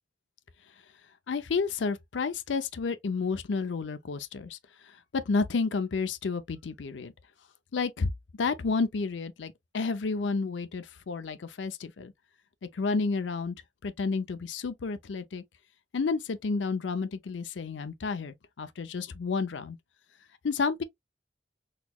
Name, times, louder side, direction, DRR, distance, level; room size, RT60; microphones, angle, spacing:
voice 1, 1.3-4.6 5.1-7.1 7.7-8.1 8.4-12.1 12.7-13.5 13.8-15.4 15.9-19.8 20.4-20.8, left 4 dB, 85° left, 0.5 m, -30 dB
4.0 x 2.9 x 2.3 m
head